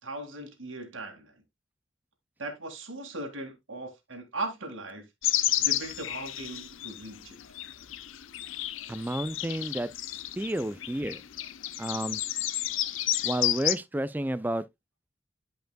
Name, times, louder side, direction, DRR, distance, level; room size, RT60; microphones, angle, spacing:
voice 1, 0.0-1.4 2.4-5.0 5.6-7.4, right 2 dB, 80° right, 2.0 m, -38 dB
sound 1, 5.2-13.8, left 13 dB, 80° left, 0.5 m, -31 dB
voice 2, 8.9-9.9 10.4-11.2 11.8-12.2 13.2-14.6, right 1 dB, 10° right, 0.3 m, -31 dB
11.5 x 5.3 x 2.2 m
head